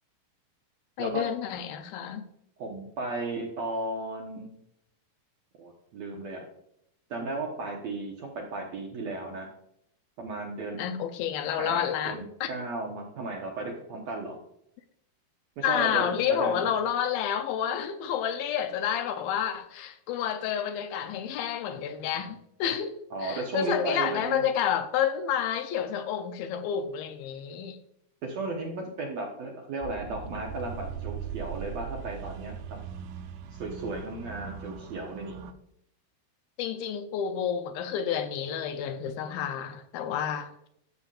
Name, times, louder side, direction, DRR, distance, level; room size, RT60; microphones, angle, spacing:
voice 1, 1.0-2.2 10.8-12.5 15.6-23.0 23.2-27.8 36.6-40.5, left 9 dB, 80° left, 2.4 m, -29 dB
voice 2, 2.6-4.5 5.6-6.4 7.1-9.5 10.2-10.8 11.6-14.4 15.6-16.7 23.1-24.4 28.2-32.5 33.5-35.4, right 2 dB, 65° right, 1.8 m, -35 dB
sound 1, 29.8-35.5, right 7 dB, 80° right, 2.6 m, -39 dB
13.5 x 7.0 x 2.5 m
omnidirectional pair, 4.4 m